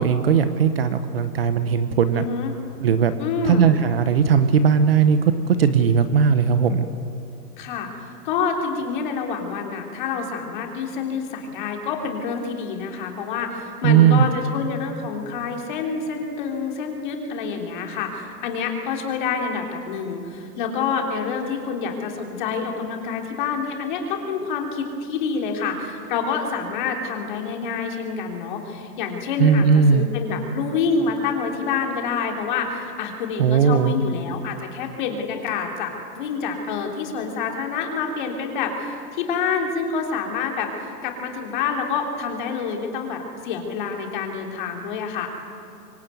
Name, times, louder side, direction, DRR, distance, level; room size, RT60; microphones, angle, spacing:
voice 1, 0.0-2.2 2.8-3.1 3.4-6.9 13.8-14.3 29.4-30.1 33.4-33.9, right 7 dB, 35° right, 10 dB, 1.2 m, -18 dB
voice 2, 2.1-2.5 3.2-3.7 7.6-7.9 8.2-43.2 43.4-45.3, left 5 dB, 30° left, 2 dB, 3.4 m, -27 dB
25.5 x 23.0 x 9.3 m, 2.7 s
hypercardioid pair, 170°, 49 cm